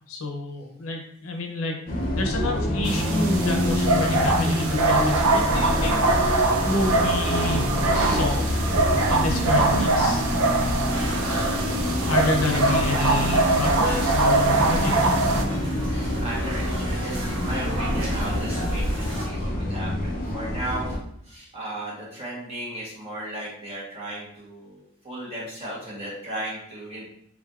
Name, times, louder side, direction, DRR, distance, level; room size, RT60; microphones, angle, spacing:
voice 1, 0.1-1.8 2.1-8.6 9.1-10.2 12.1-15.1, left 2 dB, 80° left, 1 dB, 0.7 m, -29 dB
Bus, 1.9-21.0, left 1 dB, 40° left, 0.5 m, -26 dB
sound 1, 2.8-15.4, right 3 dB, 90° right, 0.5 m, -23 dB
sound 2, 10.9-19.3, equal, 60° right, 1.1 m, -33 dB
voice 2, 12.2-12.9 14.1-14.3 15.4-15.6 15.9-21.0 21.2-27.0, right 1 dB, 30° right, -5 dB, 1.1 m, -36 dB
3.6 x 3.3 x 2.4 m, 0.69 s
head